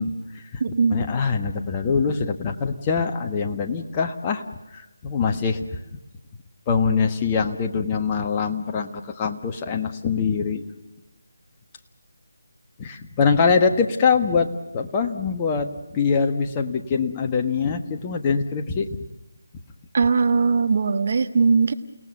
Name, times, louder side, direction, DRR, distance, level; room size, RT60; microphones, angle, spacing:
voice 1, 0.0-0.6 0.9-4.4 4.7-5.8 6.7-10.6 12.8-18.9, left 5 dB, 20° left, 4 dB, 1.5 m, -23 dB
voice 2, 0.6-1.1 19.9-21.7, right 5 dB, 45° right, 9 dB, 1.4 m, -20 dB
30.0 x 18.0 x 6.8 m, 1.0 s
figure-of-eight pair, 160°, 0 cm